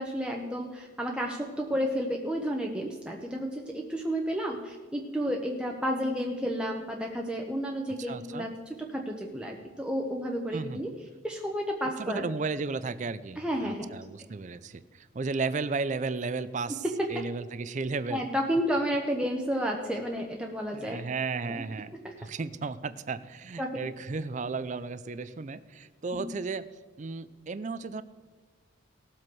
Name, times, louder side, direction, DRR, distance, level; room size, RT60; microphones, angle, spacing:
voice 1, 0.0-8.5 8.8-10.9 11.2-12.3 13.4-14.0 17.1-17.2 18.1-21.0 21.5-21.6 22.0-22.1 23.6-23.8 26.1-26.2, equal, 5° right, 0 dB, 0.8 m, -31 dB
voice 2, 8.1-8.5 10.5-10.8 12.0-16.8 17.1-18.2 20.7-26.7 27.0-28.0, right 4 dB, 35° right, 14 dB, 0.4 m, -34 dB
18.5 x 7.6 x 4.6 m, 1.4 s
head